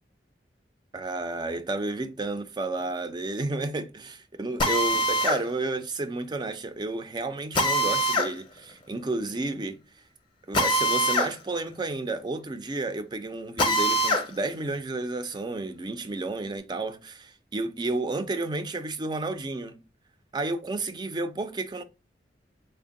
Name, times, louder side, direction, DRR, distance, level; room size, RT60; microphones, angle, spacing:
voice 1, 0.9-9.8 10.5-19.8 20.3-21.8, right 2 dB, 25° right, 0.4 m, -31 dB
Drill, 4.6-5.4 7.5-8.3 10.5-11.3 11.7-11.8 13.6-14.3, equal, 30° left, 0.6 m, -23 dB
3.5 x 2.1 x 3.7 m
head